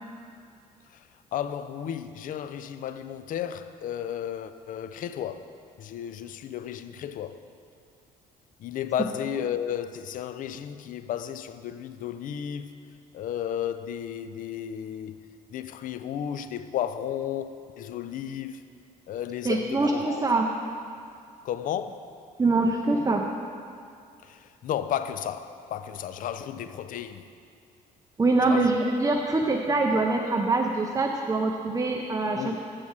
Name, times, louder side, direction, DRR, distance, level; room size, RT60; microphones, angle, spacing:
voice 1, 0.9-7.4 8.6-12.8 13.1-15.2 15.5-18.6 19.1-20.3 21.4-22.1 24.2-27.3 28.4-28.8 32.3-32.6, left 9 dB, 40° left, 0.4 m, -33 dB
voice 2, 19.4-20.5 22.4-23.2 28.2-32.5, right 3 dB, 15° right, 0.6 m, -24 dB
7.1 x 4.8 x 7.1 m
figure-of-eight pair, 45°, 21 cm